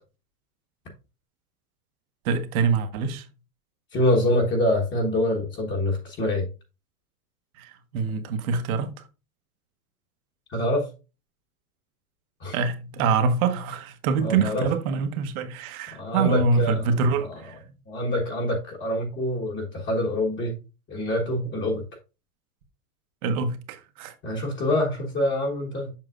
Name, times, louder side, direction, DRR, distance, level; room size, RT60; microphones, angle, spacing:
voice 1, 2.2-3.3 7.6-8.9 12.5-17.6 23.2-24.1, right 4 dB, 65° right, 1.3 m, -25 dB
voice 2, 3.9-6.5 10.5-10.9 12.4-12.6 14.2-14.7 15.9-16.9 17.3-17.4 17.9-20.6 20.9-21.8 24.2-25.9, left 1 dB, 25° left, 1.4 m, -25 dB
7.4 x 5.8 x 2.5 m
supercardioid pair, 140°, 46 cm